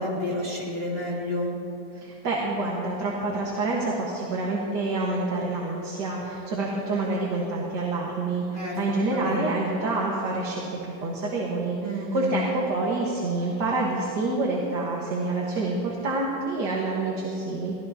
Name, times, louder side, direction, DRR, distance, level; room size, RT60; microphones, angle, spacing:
voice 1, 0.0-1.5 8.5-8.8 9.1-9.8 11.8-12.4, left 1 dB, 30° right, -4 dB, 2.8 m, -30 dB
voice 2, 1.9-17.7, right 2 dB, 60° right, -3 dB, 2.1 m, -27 dB
23.5 x 16.0 x 2.9 m, 2.8 s
omnidirectional pair, 2.1 m